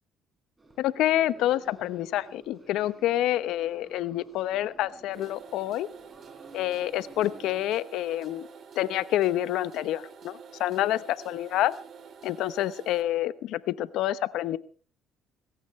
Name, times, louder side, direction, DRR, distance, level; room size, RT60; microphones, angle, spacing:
sound 1, 0.6-7.7, right 2 dB, 20° right, 6.4 m, -52 dB
voice 1, 0.8-5.9 6.5-8.4 8.8-11.7 12.2-14.6, left 13 dB, 70° left, 16 dB, 1.0 m, -28 dB
sound 2, 5.1-13.0, right 6 dB, 55° right, 3.1 m, -48 dB
21.0 x 17.5 x 3.2 m, 0.40 s
supercardioid pair, 70°, 0 cm